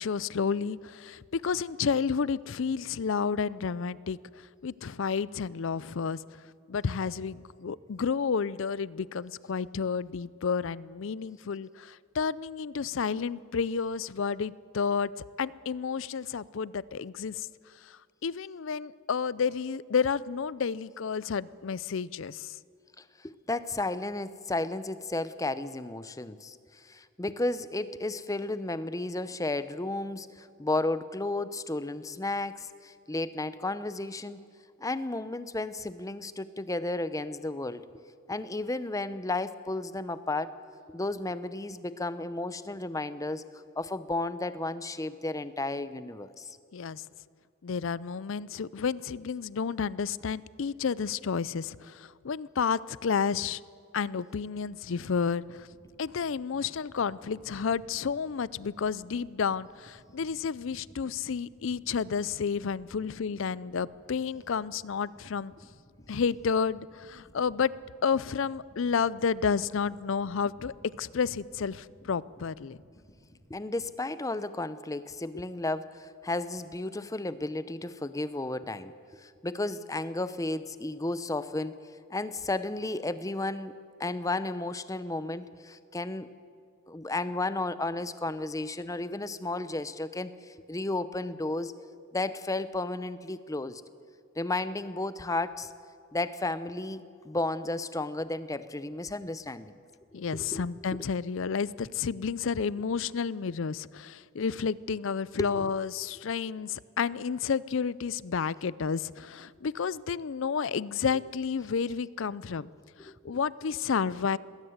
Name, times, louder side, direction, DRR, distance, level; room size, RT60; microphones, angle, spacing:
voice 1, 0.0-4.2 4.6-6.2 6.7-15.1 15.4-17.5 17.9-22.6 46.7-47.0 47.6-53.6 53.9-55.7 56.0-65.5 66.1-67.7 68.0-72.8 100.1-112.7 113.0-114.4, left 6 dB, 60° left, 20 dB, 0.4 m, -31 dB
voice 2, 23.0-34.4 34.8-37.8 38.3-40.6 40.9-46.6 73.5-78.9 79.2-81.8 82.1-83.7 84.0-86.3 86.9-91.7 92.1-93.8 94.4-95.7 96.1-99.7 100.1-101.0 105.4-105.7 113.0-113.4, left 2 dB, 15° left, 14 dB, 0.6 m, -33 dB
sound 1, 55.5-73.4, equal, 35° left, 6.4 m, -57 dB
20.5 x 18.0 x 8.0 m, 2.2 s
head